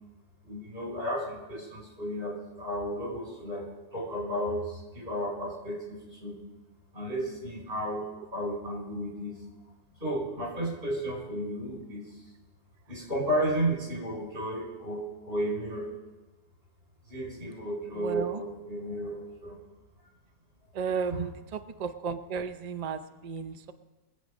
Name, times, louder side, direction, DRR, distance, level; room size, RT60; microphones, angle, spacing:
voice 1, 0.4-3.6 3.9-6.4 6.9-8.0 8.3-9.4 10.0-12.1 12.9-15.9 17.1-19.6 21.1-21.3, right 1 dB, 35° right, -3 dB, 5.6 m, -33 dB
voice 2, 17.9-18.4 20.7-23.7, right 6 dB, 80° right, 10 dB, 0.3 m, -34 dB
22.5 x 8.2 x 5.2 m, 1.1 s
omnidirectional pair, 1.6 m